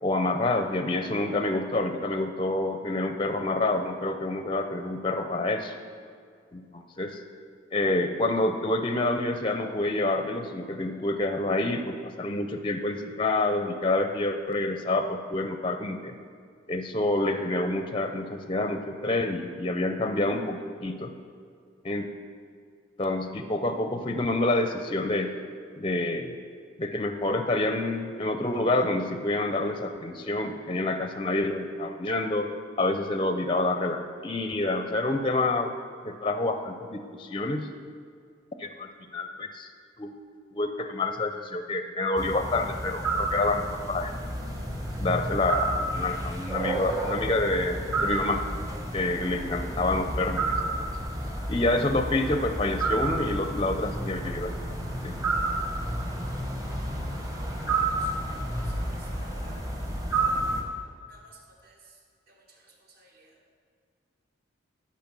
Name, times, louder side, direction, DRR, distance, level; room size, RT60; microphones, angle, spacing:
voice 1, 0.0-5.7 6.5-7.2 7.7-16.1 16.7-21.1 21.8-22.1 23.0-25.3 25.8-26.3 26.8-32.5 32.8-35.7 36.0-37.7 38.6-39.7 40.0-40.1 40.5-44.1 45.0-48.4 48.9-50.9 51.5-54.5 55.0-55.2, left 2 dB, 25° left, 7 dB, 0.5 m, -28 dB
sound 1, 42.2-60.6, right 2 dB, 20° right, 1.1 m, -30 dB
voice 2, 58.8-59.6 60.2-60.4 61.1-61.3 61.6-61.7 63.0-63.1, right 2 dB, 50° right, -1 dB, 1.8 m, -54 dB
12.5 x 5.9 x 6.1 m, 2.2 s
head